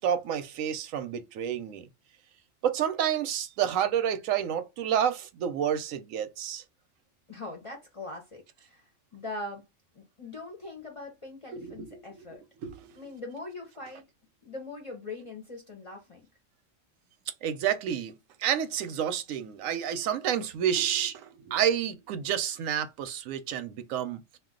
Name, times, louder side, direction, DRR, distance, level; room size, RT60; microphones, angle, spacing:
voice 1, 0.0-1.9 2.6-6.6 11.5-12.0 12.6-13.0 17.4-24.2, right 9 dB, 90° right, 1.0 m, -29 dB
voice 2, 7.3-9.6 9.9-12.4 12.9-14.1 14.4-16.2, left 2 dB, 40° left, 0.5 m, -41 dB
2.3 x 2.3 x 3.6 m
omnidirectional pair, 1.3 m